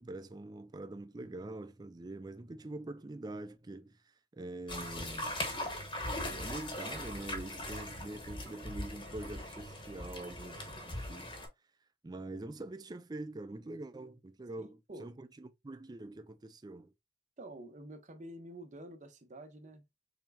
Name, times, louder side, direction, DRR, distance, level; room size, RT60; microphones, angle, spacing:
voice 1, 0.0-4.0 4.3-5.4 6.2-11.3 12.0-16.9, right 2 dB, 25° right, 0.4 m, -44 dB
sound 1, 4.7-11.5, left 1 dB, 30° left, 1.0 m, -40 dB
voice 2, 14.6-15.1 17.4-19.8, right 1 dB, 40° right, 0.8 m, -48 dB
4.4 x 3.4 x 2.2 m
head